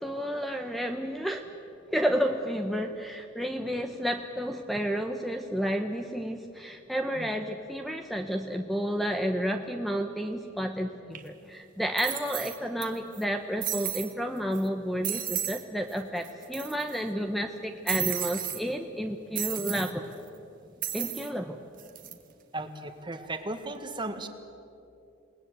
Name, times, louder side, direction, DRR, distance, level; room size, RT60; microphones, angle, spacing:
voice 1, 0.0-1.4 1.9-20.0 20.9-21.6, equal, ahead, 5 dB, 0.9 m, -31 dB
sound 1, 11.2-11.3 12.0-12.9 13.1-13.2 13.6-14.1 14.6-14.7 15.0-15.6 15.9-16.0 16.2-17.0 17.9-18.6 19.4-19.9 20.8-21.3 21.8-22.1, right 12 dB, 45° right, 1.5 m, -33 dB
voice 2, 22.5-24.3, right 2 dB, 25° right, 7 dB, 1.6 m, -36 dB
28.5 x 19.5 x 8.2 m, 2.7 s
head